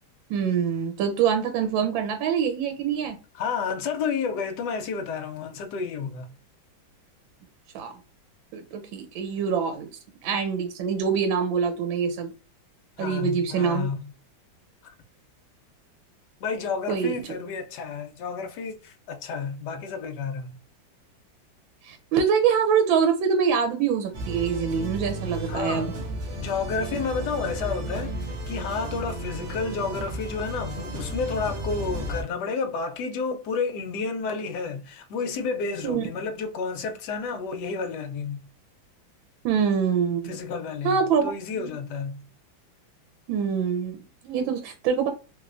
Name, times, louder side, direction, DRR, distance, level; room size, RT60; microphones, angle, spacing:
voice 1, 0.3-3.2 7.7-8.0 8.5-9.9 10.2-12.3 13.0-13.9 16.9-17.2 21.8-25.9 35.8-36.0 39.4-40.4 40.8-41.7 43.3-45.1, right 7 dB, 80° right, 1.3 m, -25 dB
voice 2, 3.3-6.3 13.0-14.0 16.4-20.6 25.5-25.9 26.4-38.5 40.2-42.3, left 5 dB, 70° left, 1.1 m, -31 dB
sound 1, 24.1-32.2, right 1 dB, 65° right, 0.7 m, -33 dB
3.1 x 3.0 x 2.4 m
omnidirectional pair, 2.1 m